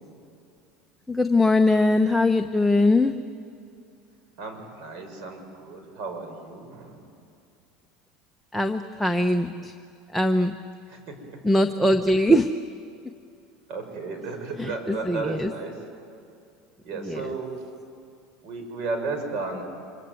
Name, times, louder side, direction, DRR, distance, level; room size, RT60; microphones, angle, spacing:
voice 1, 1.1-3.2 8.5-9.7 10.1-10.5 11.4-12.5 14.6-15.5 17.0-17.3, left 1 dB, ahead, 5 dB, 0.9 m, -21 dB
voice 2, 4.4-7.1 10.9-11.4 13.7-15.8 16.8-17.7 18.4-19.6, right 3 dB, 55° right, 5 dB, 6.2 m, -34 dB
26.0 x 24.5 x 9.3 m, 2.5 s
supercardioid pair, 130°, 0 cm